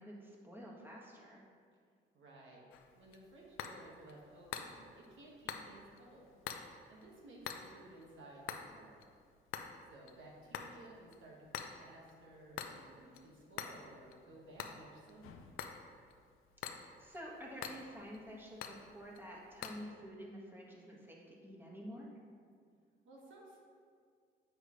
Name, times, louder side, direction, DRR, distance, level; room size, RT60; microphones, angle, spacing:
voice 1, 0.0-1.5 16.8-22.1, equal, 10° right, -3 dB, 1.5 m, -49 dB
voice 2, 2.1-2.6 2.9-6.3 6.9-9.0 9.9-15.4 23.0-23.6, right 1 dB, 70° right, -3 dB, 1.6 m, -56 dB
sound 1, 2.7-19.8, left 8 dB, 80° left, 0.5 m, -49 dB
7.9 x 6.6 x 3.1 m, 2.1 s
supercardioid pair, 65°, 21 cm